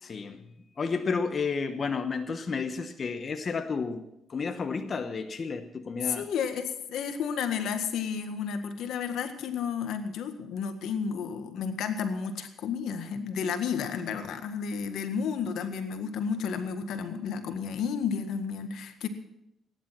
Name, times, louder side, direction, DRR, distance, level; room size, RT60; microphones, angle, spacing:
voice 1, 0.0-0.5 0.8-4.0 4.3-6.3, left 5 dB, 40° left, 8 dB, 1.1 m, -31 dB
voice 2, 6.0-19.1, left 6 dB, 80° left, 8 dB, 1.7 m, -32 dB
17.0 x 10.5 x 6.1 m, 0.82 s
cardioid pair, 90°, 0 cm